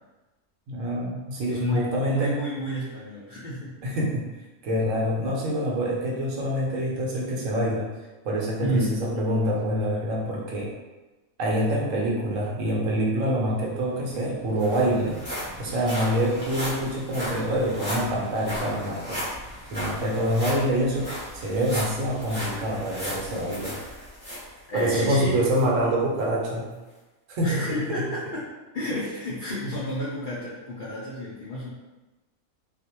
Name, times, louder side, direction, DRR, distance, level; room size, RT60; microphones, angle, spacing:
voice 1, 0.7-2.3 3.8-4.3 4.6-7.9 8.2-10.7 11.4-15.2 15.6-19.2 19.7-23.7 24.7-26.7 27.3-27.7, equal, 70° right, -3 dB, 0.9 m, -26 dB
voice 2, 1.5-3.7 8.6-9.0 21.7-21.8 24.7-25.4 27.4-31.7, equal, 90° left, -7 dB, 0.4 m, -30 dB
sound 1, 13.8-13.9 14.1-25.0 25.5-25.6 26.2-26.3, equal, 15° right, 0.5 m, -35 dB
2.4 x 2.0 x 2.8 m, 1.1 s
omnidirectional pair, 1.5 m